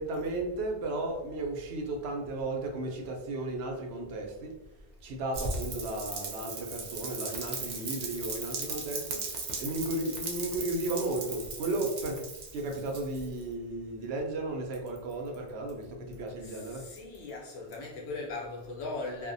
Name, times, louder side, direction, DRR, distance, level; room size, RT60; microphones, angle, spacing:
voice 1, 0.0-4.5 5.0-12.3 12.5-16.8, right 2 dB, 80° right, 0.8 m, -34 dB
Rain, 5.3-13.4, right 3 dB, 55° right, 0.5 m, -38 dB
voice 2, 16.4-19.3, left 3 dB, 85° left, 1.0 m, -39 dB
2.5 x 2.1 x 2.5 m
omnidirectional pair, 1.1 m